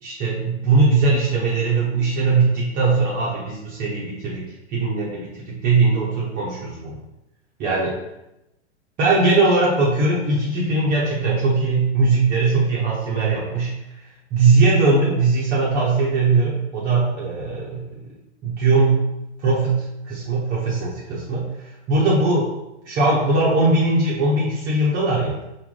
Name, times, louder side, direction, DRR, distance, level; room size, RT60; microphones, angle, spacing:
voice 1, 0.0-4.4 4.7-7.0 7.6-7.9 9.0-13.7 14.3-17.8 18.4-19.0 19.4-21.4 21.9-22.5 22.9-25.3, right 3 dB, 25° right, -6 dB, 0.8 m, -20 dB
5.8 x 2.2 x 3.6 m, 0.91 s
figure-of-eight pair, 105°, 35 cm